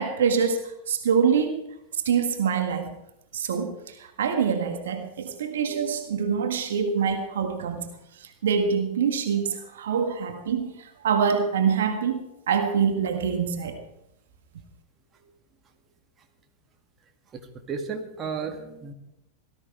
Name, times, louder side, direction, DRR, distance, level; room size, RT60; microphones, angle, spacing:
voice 1, 0.0-1.6 2.0-2.9 3.3-7.9 8.2-13.8, right 6 dB, 65° right, 6 dB, 1.7 m, -25 dB
voice 2, 17.3-18.9, right 5 dB, 30° right, 4 dB, 2.2 m, -35 dB
18.0 x 13.5 x 4.7 m, 0.84 s
figure-of-eight pair, 90°, 0 cm